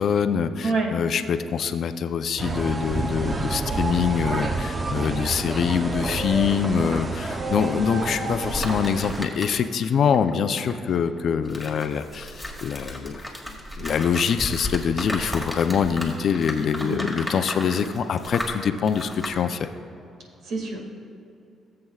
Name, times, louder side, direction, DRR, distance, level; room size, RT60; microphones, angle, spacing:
voice 1, 0.0-13.3 13.8-19.7, left 7 dB, 60° left, 9 dB, 0.5 m, -24 dB
sound 1, 2.4-9.3, right 3 dB, 30° right, 0.7 m, -28 dB
sound 2, 8.5-9.9 10.1-19.4, left 1 dB, 5° right, 2.0 m, -34 dB
voice 2, 20.4-20.9, right 3 dB, 70° right, 0 dB, 2.1 m, -27 dB
18.5 x 7.8 x 2.4 m, 2.8 s
cardioid pair, 90°, 0 cm